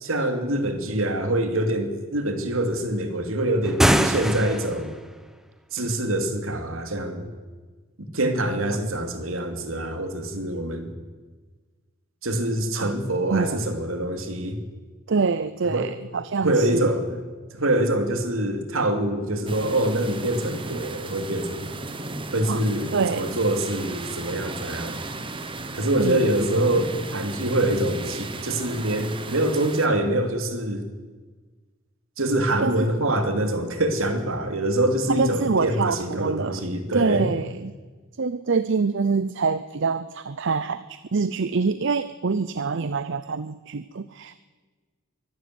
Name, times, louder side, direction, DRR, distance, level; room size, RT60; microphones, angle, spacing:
voice 1, 0.0-4.9 5.7-7.3 8.1-10.9 12.2-14.6 15.7-15.9 16.4-17.2 17.5-21.7 22.3-25.0 25.7-30.8 32.2-37.3, right 1 dB, 75° right, 6 dB, 2.8 m, -25 dB
sound 1, 3.6-4.9, equal, ahead, 0.9 m, -22 dB
voice 2, 13.3-13.6 15.1-16.9 22.5-22.6 22.9-23.4 26.0-26.5 32.6-32.9 35.1-36.6 36.9-37.7 38.2-44.4, right 4 dB, 60° right, 14 dB, 0.6 m, -25 dB
sound 2, 19.5-29.9, right 3 dB, 25° right, 1.3 m, -36 dB
23.0 x 12.5 x 9.5 m, 1.4 s
head